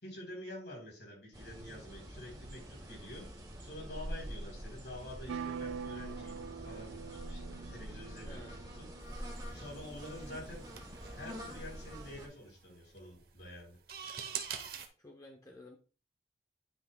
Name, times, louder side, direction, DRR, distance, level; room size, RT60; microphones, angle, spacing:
voice 1, 0.0-3.3 3.6-8.5 8.8-8.9 9.5-10.7 11.2-13.8, left 1 dB, 65° left, -1 dB, 3.6 m, -48 dB
sound 1, 1.3-12.3, equal, 25° right, 1.7 m, -46 dB
sound 2, 5.3-9.1, right 6 dB, 90° right, 0.3 m, -44 dB
voice 2, 8.2-8.6 15.0-15.8, left 1 dB, 20° left, 2 dB, 0.7 m, -52 dB
sound 3, 9.0-14.9, right 8 dB, 55° right, 1.0 m, -46 dB
9.9 x 5.9 x 2.3 m, 0.35 s
head